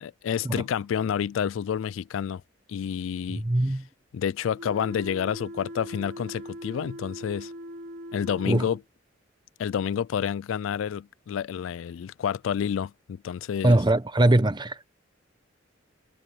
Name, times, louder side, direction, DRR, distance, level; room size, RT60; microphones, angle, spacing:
voice 1, 0.0-2.4 2.7-3.4 4.1-7.5 8.1-8.8 9.6-13.8, left 8 dB, 80° left, 0.3 m, -29 dB
voice 2, 3.3-3.8 8.5-8.7 13.6-14.8, right 1 dB, 25° right, 0.9 m, -21 dB
sound 1, 4.6-8.8, equal, 50° right, 5.9 m, -40 dB
head